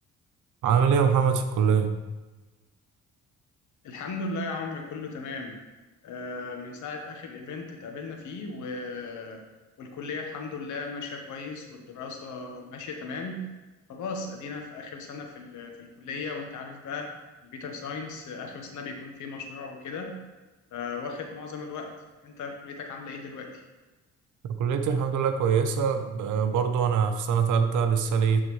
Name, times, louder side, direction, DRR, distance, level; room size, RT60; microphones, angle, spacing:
voice 1, 0.6-1.9 24.6-28.4, right 6 dB, 80° right, 7 dB, 0.9 m, -23 dB
voice 2, 3.8-5.6 6.0-9.4 9.8-13.5 13.9-17.1 17.4-20.2 20.7-21.9 22.2-23.6, left 4 dB, 75° left, 3 dB, 1.2 m, -37 dB
12.0 x 4.0 x 3.2 m, 1.2 s
cardioid pair, 90°, 30 cm